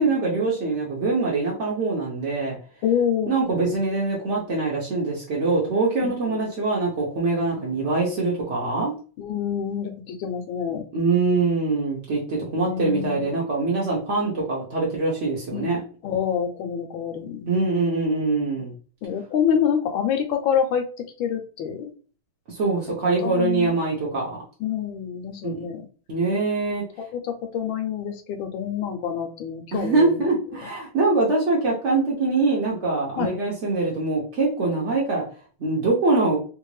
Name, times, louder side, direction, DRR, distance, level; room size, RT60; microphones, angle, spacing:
voice 1, 0.0-2.6 3.3-8.9 10.9-15.8 17.4-18.7 22.5-24.4 25.4-25.6 26.1-26.8 29.7-35.2 35.6-36.4, right 3 dB, 60° right, -4 dB, 0.7 m, -23 dB
voice 2, 2.8-3.3 6.3-6.4 7.5-7.8 9.2-10.8 12.5-13.2 15.5-17.5 18.5-18.6 19.0-21.9 23.0-23.7 24.6-25.9 27.1-30.2 33.2-33.3, left 8 dB, 80° left, 6 dB, 1.3 m, -27 dB
3.3 x 2.5 x 3.1 m, 0.39 s
omnidirectional pair, 2.3 m